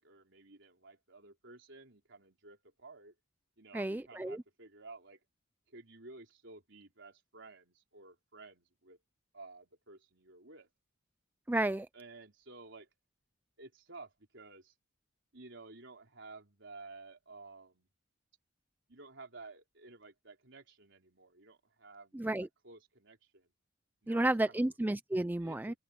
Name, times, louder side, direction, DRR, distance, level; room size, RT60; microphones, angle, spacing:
voice 1, 0.0-3.1 3.6-5.2 5.7-9.0 9.3-10.7 11.9-12.9 13.6-14.7 15.3-17.9 18.9-23.5 24.0-24.7 25.4-25.8, right 3 dB, 65° right, 4.8 m, -53 dB
voice 2, 3.7-4.4 11.5-11.9 22.1-22.5 24.1-25.7, right 1 dB, 10° right, 0.4 m, -32 dB
open air
head